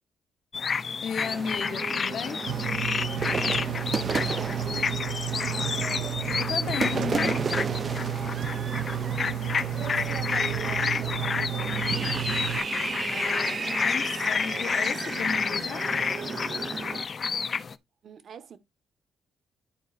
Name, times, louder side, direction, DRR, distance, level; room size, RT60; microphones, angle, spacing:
sound 1, 0.5-17.8, left 5 dB, 40° left, 0.6 m, -30 dB
voice 1, 1.0-2.5 6.4-7.5 13.1-15.9, left 7 dB, 60° left, 1.0 m, -35 dB
sound 2, 1.2-17.0, right 5 dB, 40° right, 0.7 m, -34 dB
Engine, 2.5-12.6, right 10 dB, 80° right, 0.5 m, -32 dB
voice 2, 3.4-5.7 6.0-6.5 9.8-12.0 18.0-18.6, right 7 dB, 60° right, 1.5 m, -45 dB
11.5 x 4.7 x 2.6 m
cardioid pair, 90°, 0 cm